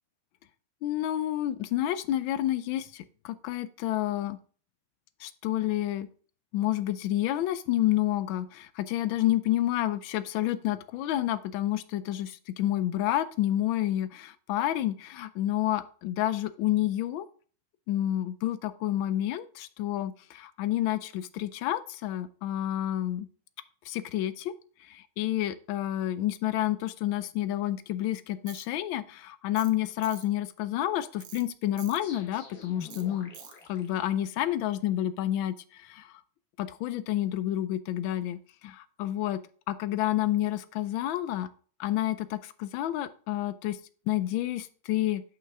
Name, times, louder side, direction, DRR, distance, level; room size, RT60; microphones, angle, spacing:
voice 1, 0.8-4.4 5.2-6.1 6.5-17.3 17.9-23.3 23.9-24.5 24.9-33.3 33.7-36.1 36.6-39.4 39.7-41.5 41.8-43.8 44.1-45.2, left 13 dB, 80° left, 14 dB, 1.3 m, -29 dB
Tools, 28.5-28.7 29.6-29.8 30.0-30.3 31.2-31.4 31.8-32.0 32.9-33.0 33.3-33.6, right 10 dB, 90° right, 1.6 m, -46 dB
sound 1, 32.0-34.8, left 4 dB, 55° left, 1.7 m, -48 dB
5.8 x 5.3 x 4.7 m, 0.43 s
omnidirectional pair, 2.2 m